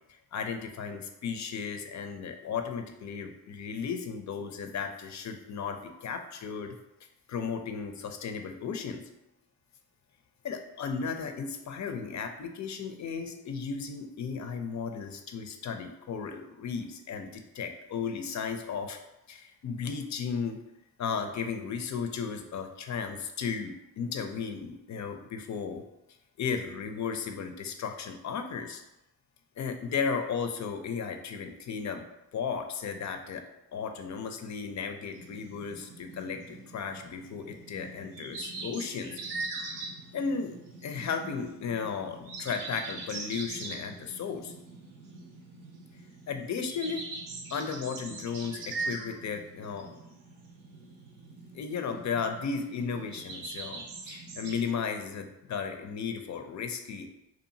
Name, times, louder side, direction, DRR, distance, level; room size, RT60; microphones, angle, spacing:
voice 1, 0.3-6.8 7.3-9.1 10.4-19.0 19.3-20.6 21.0-25.8 26.4-28.8 29.6-32.0 32.3-33.4 33.7-39.2 40.1-40.6 40.8-44.5 46.3-47.0 47.5-49.9 51.5-57.1, left 6 dB, 45° left, 6 dB, 0.5 m, -35 dB
sound 1, 35.1-54.6, right 3 dB, 85° right, 0.6 m, -42 dB
2.7 x 2.4 x 2.7 m, 0.91 s
supercardioid pair, 50°, 42 cm